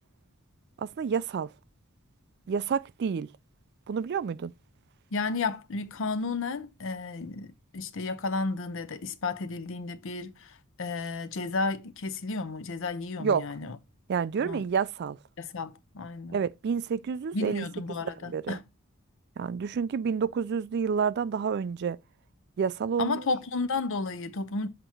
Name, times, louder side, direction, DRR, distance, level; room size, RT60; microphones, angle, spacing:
voice 1, 0.8-1.5 2.5-3.3 3.9-4.5 13.2-13.5 14.1-15.2 16.3-18.6 19.4-22.0 22.6-23.2, right 6 dB, 50° right, 0.3 m, -29 dB
voice 2, 5.1-13.8 14.4-14.6 15.4-16.4 17.3-18.6 23.0-24.7, left 3 dB, 60° left, 0.7 m, -32 dB
7.7 x 2.9 x 4.4 m
head